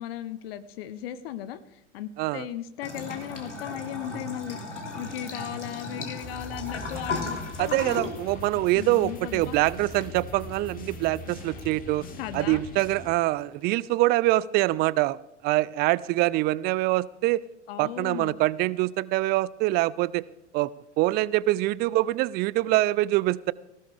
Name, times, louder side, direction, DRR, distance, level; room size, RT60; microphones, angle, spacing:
voice 1, 0.0-4.6 5.0-8.1 8.7-9.5 12.2-12.6 17.7-18.4, left 11 dB, 55° left, 14 dB, 0.9 m, -36 dB
Bathtub (filling or washing) / Trickle dribble, 2.8-13.8, left 3 dB, 80° left, 3.2 m, -38 dB
sound 1, 6.2-13.1, left 3 dB, 25° left, 2.3 m, -41 dB
voice 2, 7.6-12.0 12.3-15.2 15.4-17.4 17.8-20.2 20.5-20.7 21.0-23.5, right 18 dB, 30° right, 22 dB, 0.4 m, -24 dB
18.5 x 16.5 x 3.4 m, 0.89 s
figure-of-eight pair, 85°, 35 cm